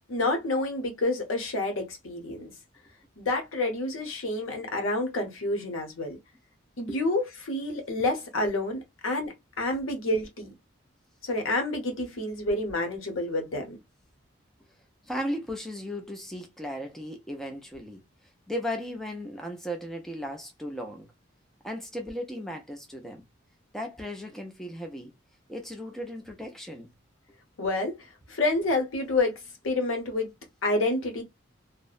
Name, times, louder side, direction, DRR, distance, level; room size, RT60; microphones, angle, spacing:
voice 1, 0.1-2.5 3.2-6.2 6.8-10.5 11.2-13.8 27.6-28.0 28.3-29.4 29.6-30.3 30.6-31.2, left 2 dB, 85° left, 0.9 m, -28 dB
voice 2, 15.0-21.1 21.6-23.2 23.7-25.1 25.5-26.9, equal, ahead, 0.3 m, -36 dB
2.7 x 2.1 x 2.3 m
head